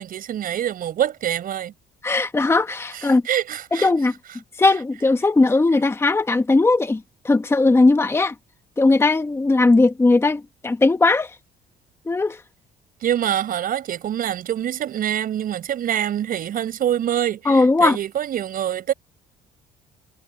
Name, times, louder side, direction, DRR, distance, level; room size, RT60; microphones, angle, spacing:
voice 1, 0.0-1.7 2.9-3.9 4.3-4.4 13.0-18.9, right 10 dB, 55° right, 6.0 m, -25 dB
voice 2, 2.0-3.2 3.8-4.1 4.6-7.0 7.2-8.3 8.8-11.3 12.1-12.4 17.5-18.0, left 3 dB, 15° left, 1.1 m, -18 dB
cardioid pair, 110°, 17 cm